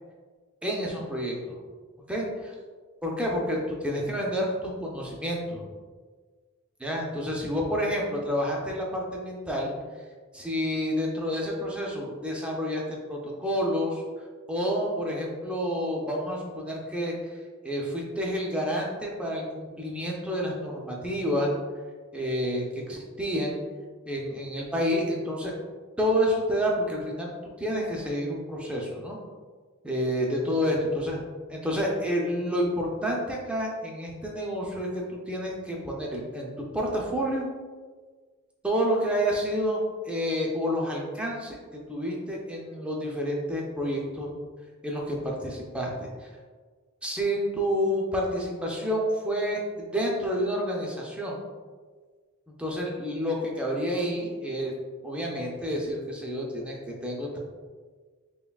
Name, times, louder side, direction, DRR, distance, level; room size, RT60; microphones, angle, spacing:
voice 1, 0.6-1.6 2.1-2.5 3.0-5.6 6.8-9.7 10.3-14.0 14.5-17.2 17.6-21.5 22.1-23.6 24.1-25.5 26.0-27.3 27.6-29.2 29.8-31.2 31.5-37.5 38.6-39.8 40.1-41.6 41.9-44.3 44.8-46.1 47.0-51.4 52.6-54.7 55.0-57.4, equal, 5° right, -2 dB, 0.5 m, -29 dB
5.6 x 2.2 x 2.3 m, 1.5 s
head